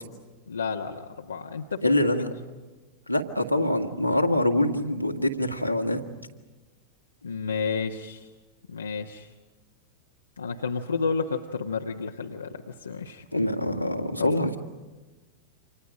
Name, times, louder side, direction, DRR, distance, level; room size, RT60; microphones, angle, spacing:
voice 1, 0.5-2.0 7.2-8.3 8.7-9.3 10.4-13.2 14.2-14.3, left 5 dB, 75° left, 2 dB, 1.3 m, -31 dB
voice 2, 1.8-2.3 3.1-6.0 13.3-14.6, left 1 dB, 90° left, 1 dB, 2.1 m, -25 dB
29.5 x 26.5 x 5.0 m, 1.2 s
figure-of-eight pair, 90°, 0 cm